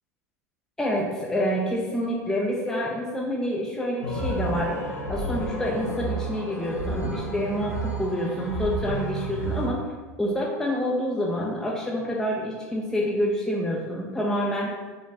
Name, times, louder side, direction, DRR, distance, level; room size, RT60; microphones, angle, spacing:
voice 1, 0.8-4.8 5.1-9.9 10.2-14.7, equal, 5° left, -3 dB, 0.5 m, -27 dB
sound 1, 4.0-9.7, right 2 dB, 90° left, 0.8 m, -30 dB
4.9 x 2.0 x 2.7 m, 1.4 s
hypercardioid pair, 80°, 9 cm